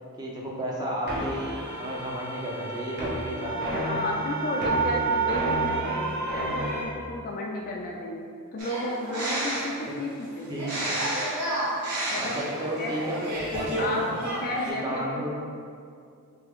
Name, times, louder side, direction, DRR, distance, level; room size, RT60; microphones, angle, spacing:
voice 1, 0.2-1.5 1.8-4.0 4.6-4.8 10.5-11.0 12.2-14.2 14.7-15.4, equal, 20° right, -4 dB, 0.6 m, -33 dB
sound 1, 1.1-6.8, right 3 dB, 50° right, 0.9 m, -29 dB
voice 2, 3.7-8.2 8.5-10.6 12.1-12.9 13.8-15.2, left 1 dB, 40° left, -2 dB, 0.3 m, -33 dB
sound 2, 8.6-9.8 10.5-13.9 14.1-14.7, right 1 dB, 85° right, 1.0 m, -31 dB
3.5 x 3.2 x 3.5 m, 2.4 s
head